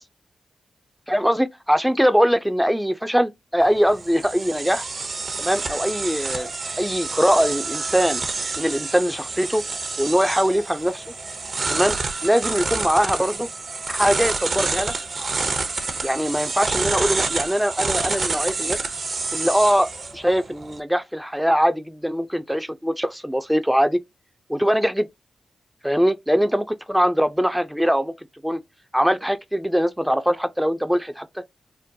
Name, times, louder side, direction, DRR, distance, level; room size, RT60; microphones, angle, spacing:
voice 1, 1.1-4.8 5.4-6.5 6.8-8.2 8.6-9.6 10.0-11.0 11.7-12.0 12.2-13.5 13.9-14.9 16.0-18.8 19.3-24.0 24.5-25.1 25.8-28.1 28.4-28.6 28.9-31.4, equal, 5° right, 0.4 m, -22 dB
sound 1, 3.6-20.8, right 3 dB, 55° right, 0.7 m, -28 dB
3.6 x 2.1 x 2.7 m
supercardioid pair, 45°, 0 cm